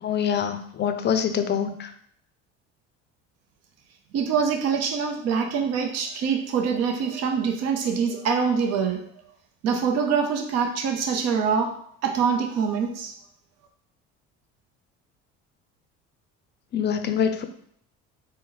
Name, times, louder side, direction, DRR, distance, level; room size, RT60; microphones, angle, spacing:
voice 1, 0.0-1.9 16.7-17.4, left 8 dB, 35° left, 9 dB, 0.5 m, -25 dB
voice 2, 4.1-9.0 9.6-11.7 12.0-13.1, right 6 dB, 60° right, 2 dB, 0.7 m, -24 dB
4.1 x 2.2 x 3.9 m, 0.66 s
supercardioid pair, 90°, 30 cm